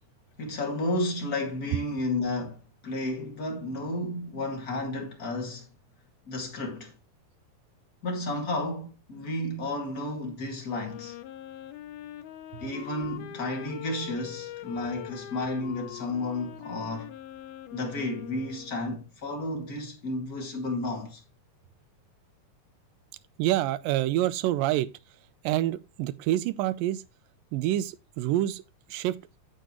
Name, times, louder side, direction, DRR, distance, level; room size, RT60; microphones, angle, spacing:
voice 1, 0.4-5.7 6.3-6.9 8.0-11.2 12.6-17.1 17.7-21.2, left 2 dB, 30° left, 2.1 m, -32 dB
Wind instrument woodwind instrument, 10.7-19.1, left 12 dB, 90° left, 2.8 m, -43 dB
voice 2, 23.4-24.9 25.4-27.0 27.5-28.6 28.9-29.2, right 14 dB, 80° right, 2.1 m, -27 dB
10.0 x 7.8 x 3.0 m
omnidirectional pair, 4.4 m